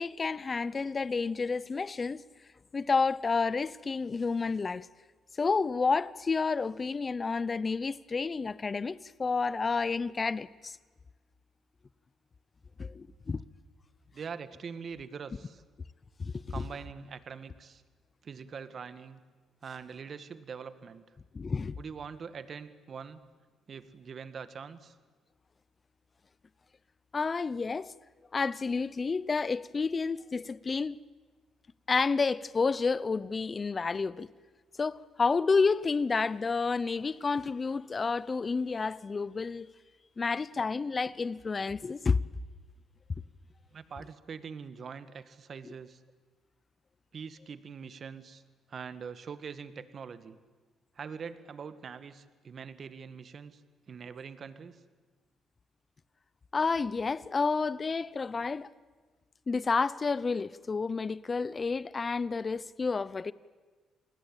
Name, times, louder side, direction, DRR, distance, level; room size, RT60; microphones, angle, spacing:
voice 1, 0.0-2.2 2.7-4.9 5.4-10.8 12.8-13.4 16.2-16.3 21.3-21.8 27.1-27.9 28.3-31.0 31.9-34.3 34.8-39.7 40.2-42.2 56.5-58.7 59.5-63.3, left 4 dB, 35° left, 0.8 m, -30 dB
voice 2, 14.1-15.6 16.5-17.8 18.2-19.2 19.6-21.0 21.8-23.2 23.7-24.9 43.7-46.0 47.1-48.4 48.7-50.4 50.9-53.6 53.9-54.8, right 6 dB, 50° right, 1.6 m, -43 dB
28.5 x 20.5 x 9.0 m
cardioid pair, 90°, 0 cm